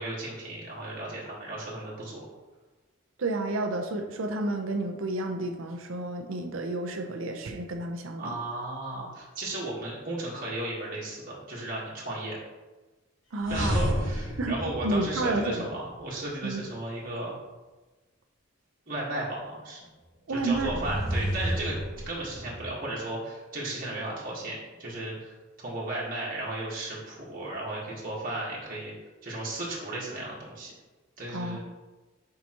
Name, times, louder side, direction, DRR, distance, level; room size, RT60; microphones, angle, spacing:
voice 1, 0.0-2.2 8.2-12.4 13.5-17.3 18.9-19.8 20.3-21.7 22.1-28.9 29.2-30.7 31.2-31.6, right 1 dB, 45° right, -6 dB, 1.5 m, -35 dB
voice 2, 3.2-8.4 13.3-13.8 14.4-14.6 14.8-15.7 16.4-16.6 20.3-20.8 31.3-31.6, right 2 dB, 90° right, 4 dB, 0.7 m, -30 dB
sound 1, 13.4-15.8 20.4-22.7, equal, 85° left, 1.9 m, -31 dB
7.0 x 4.9 x 3.0 m, 1.2 s
head